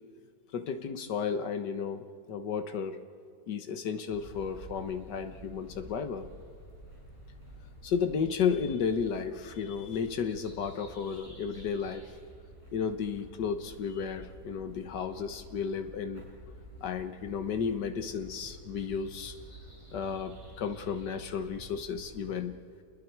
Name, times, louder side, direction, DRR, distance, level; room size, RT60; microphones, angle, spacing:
voice 1, 0.5-3.0 3.5-6.3 7.8-12.0 12.7-16.3 16.8-19.3 19.9-22.6, left 6 dB, 75° left, 9 dB, 1.7 m, -33 dB
sound 1, 4.1-22.3, right 1 dB, 15° left, 7.3 m, -50 dB
28.0 x 21.0 x 4.7 m, 2.4 s
omnidirectional pair, 1.9 m